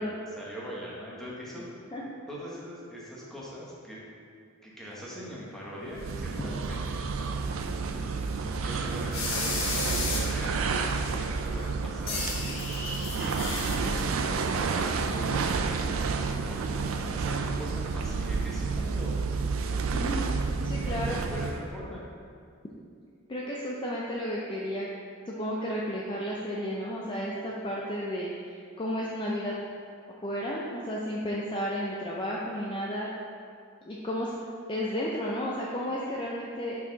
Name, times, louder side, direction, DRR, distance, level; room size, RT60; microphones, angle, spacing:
voice 1, 0.0-1.6 2.3-4.0 4.6-7.0 7.9-10.7 10.9-12.5 13.1-19.6 20.8-22.1, equal, ahead, -6 dB, 1.2 m, -41 dB
sound 1, 5.2-6.4 6.7-6.8 7.2-7.3 7.8-7.9 8.6-8.8 9.1-10.5 11.0-11.2 11.6-11.7 12.1-14.0, left 3 dB, 75° left, 1.2 m, -34 dB
sound 2, 5.9-21.7, right 4 dB, 70° right, 0.4 m, -30 dB
voice 2, 19.9-20.4 20.6-21.2 23.3-24.9 25.3-29.5 30.2-33.1 33.9-34.3 34.7-36.8, equal, 25° left, -4 dB, 0.5 m, -32 dB
5.9 x 4.7 x 3.9 m, 2.3 s
head